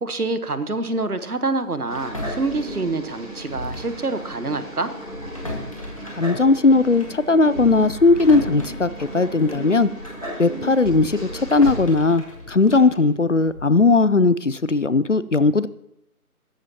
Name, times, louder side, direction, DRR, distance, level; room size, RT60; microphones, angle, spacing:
voice 1, 0.0-4.9, right 3 dB, 75° right, 12 dB, 1.3 m, -26 dB
sound 1, 1.8-11.9, right 1 dB, ahead, 1.7 m, -35 dB
sound 2, 1.9-4.0 4.3-4.5 5.0-10.3 10.7-13.8, left 1 dB, 20° left, 1.6 m, -37 dB
voice 2, 6.2-9.9 10.4-15.7, left 3 dB, 55° left, 17 dB, 0.5 m, -18 dB
15.5 x 14.0 x 2.9 m, 0.77 s
figure-of-eight pair, 165°, 45 cm